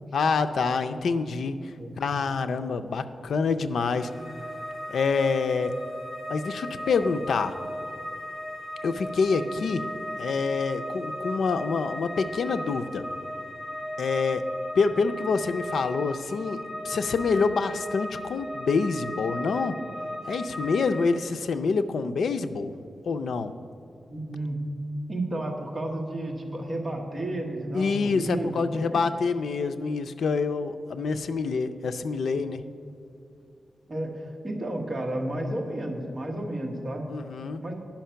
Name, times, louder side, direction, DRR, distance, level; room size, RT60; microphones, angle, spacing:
voice 1, 0.1-4.1 4.9-5.7 6.3-7.6 8.8-9.9 10.2-13.0 14.0-14.4 14.8-19.8 20.2-22.7 23.1-23.5 27.7-32.6 37.1-37.6, left 4 dB, 80° left, 10 dB, 0.4 m, -26 dB
sound 1, 3.9-21.1, equal, 15° left, 1.6 m, -37 dB
voice 2, 24.1-24.7 25.1-28.8 32.3-32.4 33.9-37.0 37.6-37.7, right 1 dB, 30° right, 0 dB, 1.3 m, -32 dB
10.5 x 5.8 x 5.6 m, 2.6 s
wide cardioid pair, 160°, 0 cm